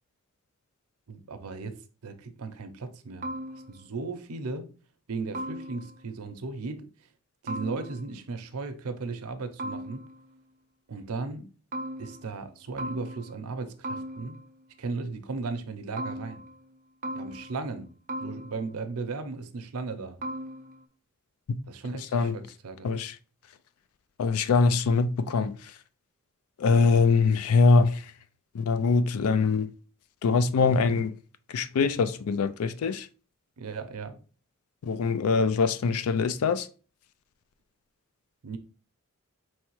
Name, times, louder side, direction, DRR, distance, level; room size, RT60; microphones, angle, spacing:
voice 1, 1.1-3.3 3.7-4.7 5.1-6.9 7.4-10.0 10.9-11.5 12.0-14.4 14.8-16.5 17.1-17.9 18.2-20.2 21.7-22.9 33.6-34.2 38.4-38.6, right 4 dB, 85° right, 0.6 m, -36 dB
sound 1, 3.2-4.0 5.3-6.1 7.5-8.3 9.6-10.4 11.7-12.5 12.8-13.6 13.8-14.6 16.0-16.7 17.0-17.8 18.1-18.9 20.2-20.8, right 1 dB, 35° right, 0.4 m, -38 dB
voice 2, 24.2-25.6 26.6-28.0 28.5-29.7 30.2-31.1 31.5-33.1 34.8-36.7, left 4 dB, 80° left, 0.4 m, -23 dB
4.6 x 3.1 x 3.0 m
head